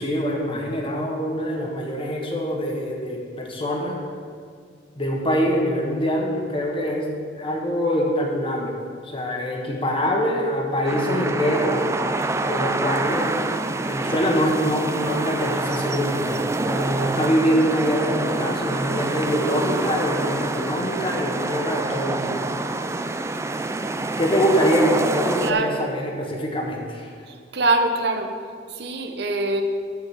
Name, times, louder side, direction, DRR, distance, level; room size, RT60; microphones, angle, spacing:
voice 1, 0.0-4.0 5.0-7.1 7.3-8.8 9.1-11.8 12.4-13.4 13.7-22.4 24.2-27.1, equal, 30° left, 0 dB, 1.3 m, -24 dB
sound 1, 10.8-25.5, right 2 dB, 15° right, 0.4 m, -26 dB
voice 2, 25.4-25.7 27.3-28.3 28.7-29.6, right 2 dB, 65° right, 5 dB, 0.9 m, -23 dB
7.5 x 7.0 x 6.4 m, 2.1 s
head